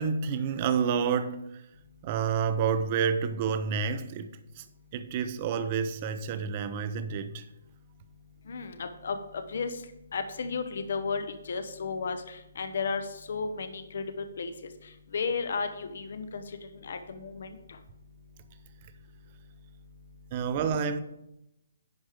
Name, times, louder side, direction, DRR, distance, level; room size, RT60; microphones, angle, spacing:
voice 1, 0.0-1.4 2.0-4.3 4.6-4.7 4.9-7.5 20.3-21.0, right 6 dB, 30° right, 0.6 m, -29 dB
voice 2, 8.5-9.7 10.1-14.5 15.1-16.4 16.8-17.6, left 5 dB, 60° left, 0.9 m, -33 dB
10.5 x 4.9 x 5.0 m
hypercardioid pair, 165°, 0 cm